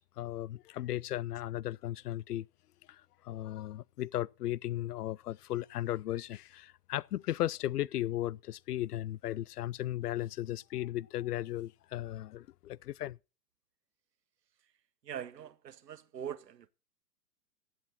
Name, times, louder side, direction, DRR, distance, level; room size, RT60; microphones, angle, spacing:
voice 1, 0.2-2.5 2.9-13.2, left 13 dB, 70° left, 0.5 m, -36 dB
voice 2, 15.0-16.7, right 9 dB, 80° right, 1.0 m, -42 dB
15.5 x 8.8 x 4.2 m
hypercardioid pair, 115°, 48 cm